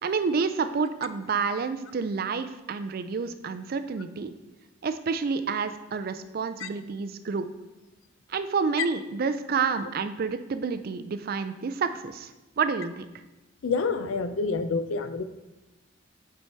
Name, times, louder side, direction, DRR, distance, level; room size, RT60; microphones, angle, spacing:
voice 1, 0.0-4.3 4.8-7.5 8.3-12.3 12.6-13.1, right 5 dB, 50° right, 10 dB, 0.4 m, -29 dB
voice 2, 13.6-15.2, left 4 dB, 80° left, 11 dB, 0.5 m, -28 dB
6.0 x 4.5 x 4.5 m, 1.0 s
head